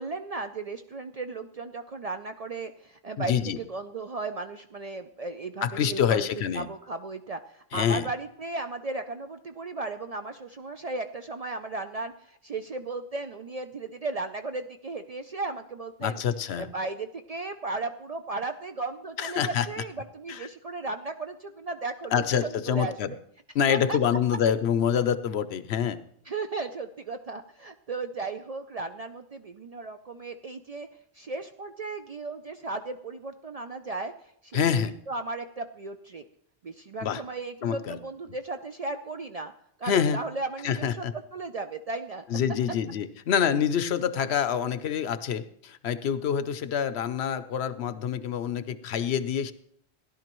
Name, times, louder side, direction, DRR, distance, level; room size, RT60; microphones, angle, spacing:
voice 1, 0.0-6.3 6.5-16.2 16.6-23.2 23.7-24.0 26.3-30.9 31.1-34.6 35.1-36.2 36.6-39.5 39.8-41.1 41.3-42.2, right 3 dB, 50° right, 7 dB, 0.4 m, -35 dB
voice 2, 3.2-3.6 5.6-6.7 7.7-8.1 16.0-16.7 19.2-19.7 20.3-20.5 22.1-23.1 23.5-26.0 34.5-34.9 37.0-37.2 37.6-38.0 39.8-40.2 40.6-41.1 42.3-49.5, left 8 dB, 75° left, 13 dB, 0.9 m, -26 dB
16.5 x 11.5 x 3.0 m, 0.71 s
omnidirectional pair, 1.1 m